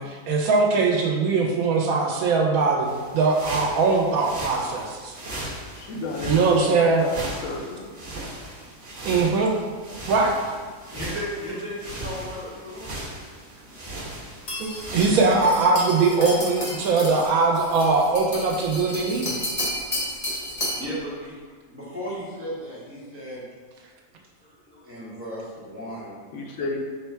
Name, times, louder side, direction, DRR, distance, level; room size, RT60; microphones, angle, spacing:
voice 1, 0.0-2.9 3.1-5.1 6.3-7.0 9.0-9.5 10.1-10.3 14.6-19.4, right 4 dB, 85° right, 0 dB, 1.1 m, -21 dB
sound 1, 2.8-15.6, right 1 dB, 50° right, 1.1 m, -37 dB
voice 2, 5.8-7.1 7.4-7.8 26.3-26.8, left 3 dB, 80° left, 0 dB, 1.1 m, -32 dB
voice 3, 10.9-12.9 19.2-19.3 19.6-23.5 24.4-26.2, equal, 10° right, -8 dB, 0.8 m, -36 dB
sound 2, 14.5-20.9, left 1 dB, 35° left, 0.8 m, -32 dB
3.8 x 2.2 x 4.4 m, 1.5 s
omnidirectional pair, 1.5 m